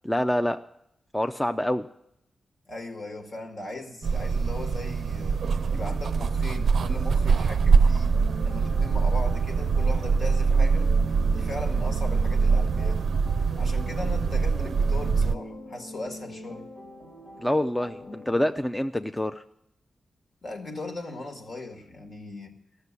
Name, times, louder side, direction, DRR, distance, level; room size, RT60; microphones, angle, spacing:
voice 1, 0.0-0.6 1.1-1.9 17.4-19.4, left 1 dB, 10° left, 9 dB, 0.4 m, -26 dB
voice 2, 2.7-5.4 5.7-10.9 11.3-13.1 13.6-16.7 20.4-22.5, left 2 dB, 60° left, 4 dB, 1.8 m, -38 dB
sound 1, 4.0-15.3, right 5 dB, 75° right, 0.4 m, -23 dB
sound 2, 8.1-18.5, left 1 dB, 75° left, 3.1 m, -43 dB
13.5 x 6.7 x 9.6 m, 0.78 s
wide cardioid pair, 90°, 0 cm